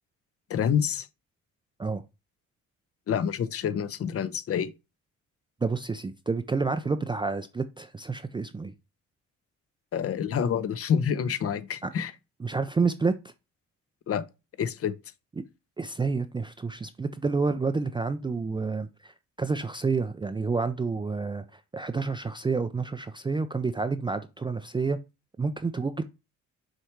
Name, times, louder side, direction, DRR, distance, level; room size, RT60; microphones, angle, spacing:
voice 1, 0.5-1.1 3.1-4.7 9.9-12.1 14.1-14.2 14.6-14.9, left 8 dB, 50° left, 0.7 m, -27 dB
voice 2, 5.6-8.7 11.8-11.9 12.4-13.3 15.8-25.0 25.4-26.0, right 4 dB, 15° right, 0.4 m, -29 dB
6.4 x 3.2 x 4.5 m
cardioid pair, 90°, 30 cm